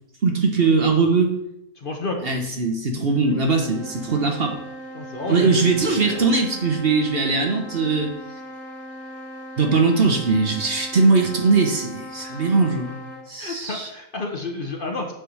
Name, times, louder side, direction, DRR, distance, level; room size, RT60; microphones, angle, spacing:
voice 1, 0.2-1.3 2.2-4.5 5.3-8.1 9.6-12.9 13.3-13.9, right 4 dB, 50° right, 3 dB, 1.0 m, -20 dB
voice 2, 1.8-2.3 4.9-6.3 12.2-12.5 13.4-15.1, left 3 dB, 45° left, 2 dB, 0.8 m, -31 dB
sound 1, 3.1-13.4, equal, 10° right, 1.5 m, -38 dB
7.9 x 3.3 x 6.1 m, 0.81 s
omnidirectional pair, 1.5 m